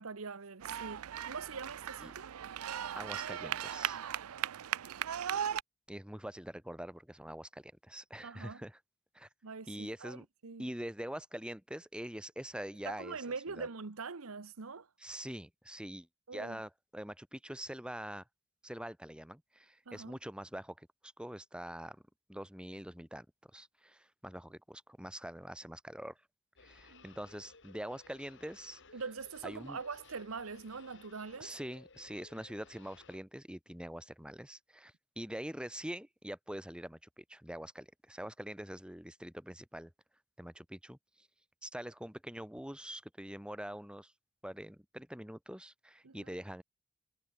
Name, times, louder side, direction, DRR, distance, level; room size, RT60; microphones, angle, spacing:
voice 1, 0.0-2.3 8.2-8.6 9.4-10.7 12.9-14.9 16.3-16.6 19.9-20.2 26.9-27.0 28.9-31.6 46.0-46.3, right 4 dB, 70° right, 1.0 m, -43 dB
sound 1, 0.6-5.6, right 10 dB, 90° right, 0.5 m, -38 dB
voice 2, 3.0-4.0 5.9-8.8 9.1-9.3 9.7-10.3 10.6-13.2 13.5-13.7 15.0-16.1 16.3-18.2 18.6-22.0 22.3-23.3 23.5-26.2 26.6-28.8 29.4-29.8 31.4-39.9 40.4-41.3 41.6-44.1 44.4-46.6, equal, 5° right, 2.0 m, -44 dB
sound 2, 26.6-33.2, left 4 dB, 60° left, 5.1 m, -59 dB
head